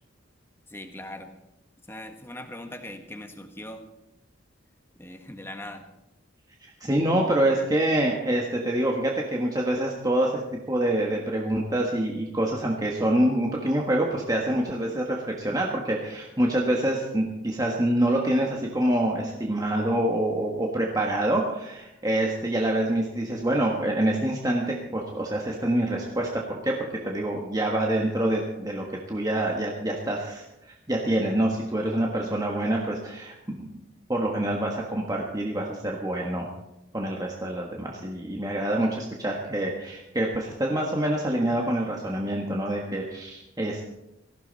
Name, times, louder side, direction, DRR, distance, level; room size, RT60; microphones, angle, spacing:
voice 1, 0.7-1.3 1.9-3.8 5.0-5.8, left 1 dB, 10° left, 5 dB, 1.4 m, -40 dB
voice 2, 6.8-10.4 10.7-33.7 34.1-36.5 36.9-43.8, right 1 dB, 20° right, -1 dB, 1.5 m, -26 dB
18.5 x 15.0 x 4.2 m, 0.89 s
head